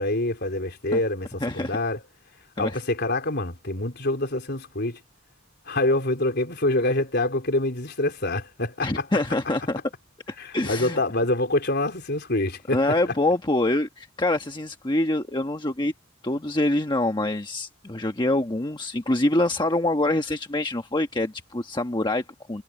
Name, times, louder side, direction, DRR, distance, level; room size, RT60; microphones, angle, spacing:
voice 1, 0.0-2.0 2.6-5.0 5.7-9.1 10.4-13.1, left 2 dB, 55° left, 4.0 m, -26 dB
voice 2, 1.4-1.8 2.6-2.8 8.8-9.8 10.5-11.0 12.7-15.9 16.2-22.6, left 1 dB, 25° left, 1.2 m, -25 dB
head